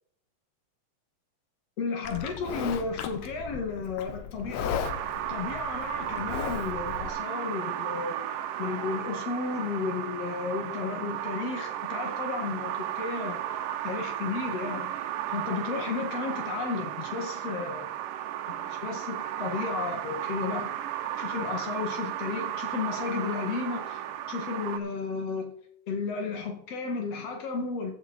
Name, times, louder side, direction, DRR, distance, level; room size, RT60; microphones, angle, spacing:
voice 1, 1.8-4.8 5.3-8.2 8.6-13.4 13.8-14.9 15.3-17.9 18.5-20.8 21.2-24.0 24.3-25.5 25.9-27.9, left 4 dB, 50° left, 3 dB, 2.6 m, -33 dB
Livestock farm animals working animals, 2.0-7.1, left 8 dB, 70° left, 1.8 m, -36 dB
sound 1, 4.8-24.8, right 11 dB, 75° right, 2.3 m, -34 dB
14.5 x 7.2 x 4.4 m, 0.65 s
omnidirectional pair, 4.1 m